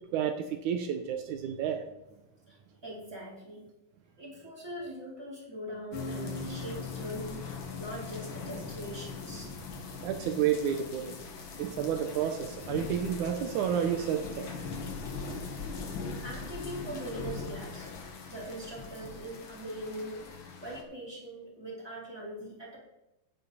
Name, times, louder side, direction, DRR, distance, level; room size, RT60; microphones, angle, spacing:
voice 1, 0.1-1.8 10.0-11.1 11.6-14.7, right 9 dB, 90° right, 6 dB, 1.7 m, -30 dB
voice 2, 2.5-3.6 4.2-9.7 16.2-20.3 20.6-22.8, equal, 5° right, -5 dB, 3.4 m, -42 dB
sound 1, 5.9-20.8, left 4 dB, 70° left, 1.2 m, -40 dB
10.0 x 9.9 x 4.1 m, 0.95 s
omnidirectional pair, 4.5 m